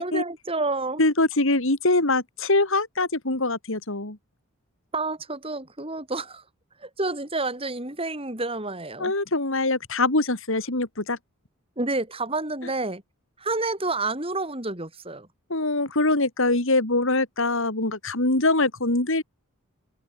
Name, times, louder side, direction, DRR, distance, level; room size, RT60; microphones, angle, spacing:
voice 1, 0.0-1.0 4.9-6.4 6.8-9.1 11.8-13.0 13.4-15.3, right 2 dB, 25° right, 4.3 m, -29 dB
voice 2, 1.0-4.2 9.0-11.2 12.6-12.7 15.5-19.2, left 2 dB, 60° left, 2.8 m, -23 dB
open air
head